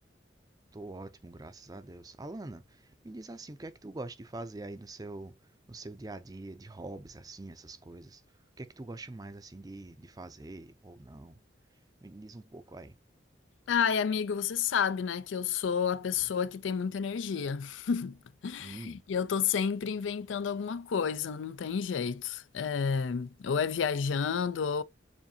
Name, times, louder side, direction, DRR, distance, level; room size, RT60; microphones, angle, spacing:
voice 1, 0.7-5.4 5.7-8.2 8.6-11.4 12.0-13.0 18.6-19.0, right 2 dB, 20° right, 0.5 m, -44 dB
voice 2, 13.7-18.2 18.4-24.8, left 6 dB, 85° left, 0.4 m, -30 dB
7.2 x 2.6 x 2.7 m
head